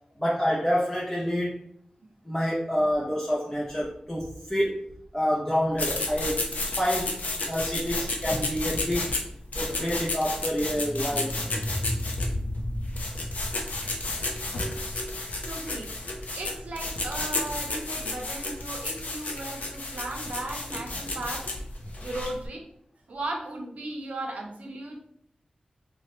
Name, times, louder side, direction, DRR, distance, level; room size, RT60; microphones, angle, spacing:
voice 1, 0.2-1.7 2.2-4.9 5.1-7.1 7.4-9.1 9.6-11.3, equal, 15° left, -5 dB, 0.5 m, -27 dB
sound 1, 5.7-22.5, left 2 dB, 85° left, 0.5 m, -32 dB
sound 2, 10.5-15.5, left 1 dB, 50° left, 0.8 m, -34 dB
voice 2, 15.4-15.9 16.3-21.5 22.0-22.6 23.1-25.0, right 2 dB, 75° right, 1 dB, 0.6 m, -36 dB
3.0 x 2.1 x 2.9 m, 0.67 s
wide cardioid pair, 80°, 2 cm